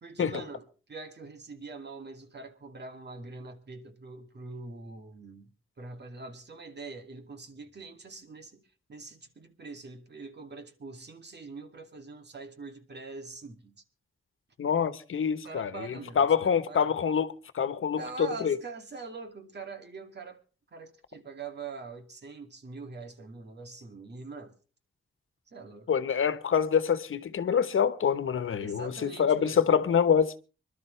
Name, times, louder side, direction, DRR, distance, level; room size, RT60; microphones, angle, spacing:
voice 1, 0.0-5.5 5.8-8.6 8.9-13.7 15.4-16.9 18.0-20.4 20.7-24.5 25.5-25.9 28.6-29.7, right 4 dB, 55° right, 2.5 m, -43 dB
voice 2, 14.6-18.0 18.4-18.6 25.9-30.4, left 7 dB, 80° left, 1.1 m, -26 dB
25.5 x 12.0 x 3.3 m
wide cardioid pair, 110°, 21 cm